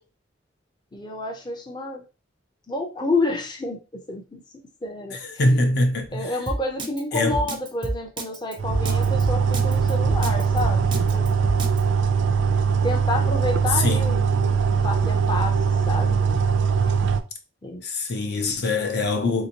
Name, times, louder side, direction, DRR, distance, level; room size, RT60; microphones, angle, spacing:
voice 1, 0.9-2.0 2.7-4.4 4.8-5.2 6.1-11.3 12.8-15.6 15.9-16.2 16.9-17.0 17.6-17.8, left 2 dB, 25° left, 0.6 m, -29 dB
voice 2, 5.1-6.3 7.1-7.5 13.7-14.2 17.8-19.5, left 2 dB, 65° left, 0.7 m, -23 dB
Drum kit, 6.5-11.8, right 1 dB, 25° right, 0.5 m, -29 dB
sound 1, 8.6-17.2, right 6 dB, 85° right, 0.4 m, -21 dB
3.5 x 2.8 x 2.8 m
head